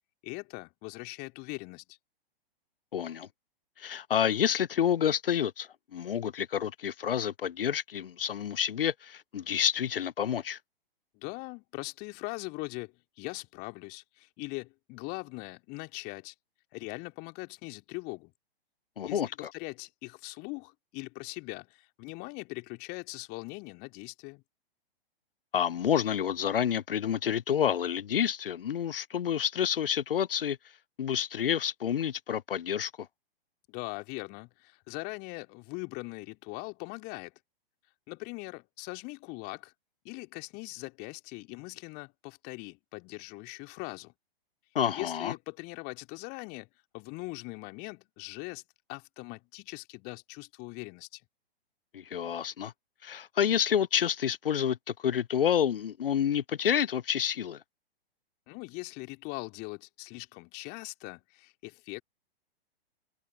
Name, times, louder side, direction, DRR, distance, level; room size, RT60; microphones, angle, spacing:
voice 1, 0.2-2.0 11.1-16.3 16.7-18.3 19.0-24.4 33.7-37.3 38.1-39.7 40.0-44.1 44.9-46.7 46.9-48.6 48.9-51.2 58.5-62.0, left 27 dB, 30° left, 2.7 m, -41 dB
voice 2, 2.9-3.3 3.8-10.6 19.0-19.5 25.5-30.6 31.0-33.1 44.7-45.3 51.9-52.7 53.0-54.8 55.0-57.6, left 9 dB, 70° left, 0.6 m, -29 dB
open air
figure-of-eight pair, 110°, 30 cm